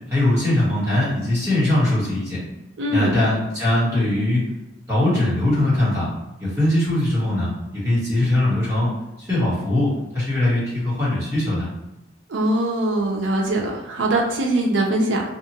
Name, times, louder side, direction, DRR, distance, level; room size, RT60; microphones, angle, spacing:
voice 1, 0.1-2.4 2.9-4.4 4.9-6.1 6.4-7.5 7.8-8.9 9.2-11.7, left 1 dB, 15° right, -10 dB, 1.2 m, -21 dB
voice 2, 2.8-3.1 12.3-15.2, right 1 dB, 85° right, 0 dB, 0.6 m, -22 dB
2.8 x 2.4 x 2.8 m, 0.97 s
head